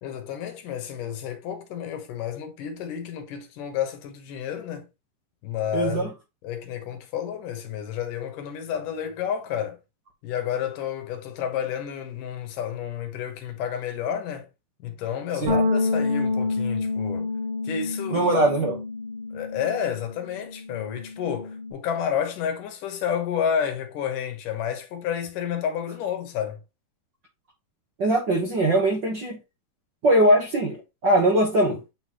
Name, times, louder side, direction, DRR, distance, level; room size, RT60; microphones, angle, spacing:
voice 1, 0.0-4.9 5.4-6.1 6.4-9.8 10.2-14.5 14.8-17.3 17.6-18.4 19.3-26.6, left 8 dB, 70° left, 2.6 m, -30 dB
voice 2, 5.7-6.1 15.4-15.6 18.1-18.8 28.0-29.4 30.0-31.8, right 1 dB, 80° right, 0.9 m, -21 dB
Bass guitar, 15.5-21.7, left 3 dB, 60° right, 4.4 m, -28 dB
9.1 x 3.9 x 3.0 m
omnidirectional pair, 4.1 m